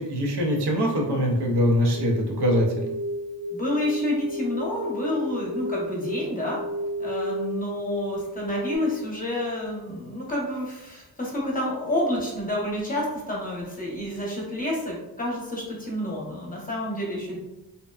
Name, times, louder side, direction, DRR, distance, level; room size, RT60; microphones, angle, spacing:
voice 1, 0.0-2.7, equal, 90° right, 0 dB, 0.7 m, -23 dB
sound 1, 1.8-8.8, left 1 dB, 45° right, 0.9 m, -33 dB
voice 2, 3.5-6.6 7.0-17.3, left 1 dB, 20° left, -4 dB, 0.8 m, -29 dB
2.8 x 2.1 x 2.3 m, 0.96 s
wide cardioid pair, 110°, 39 cm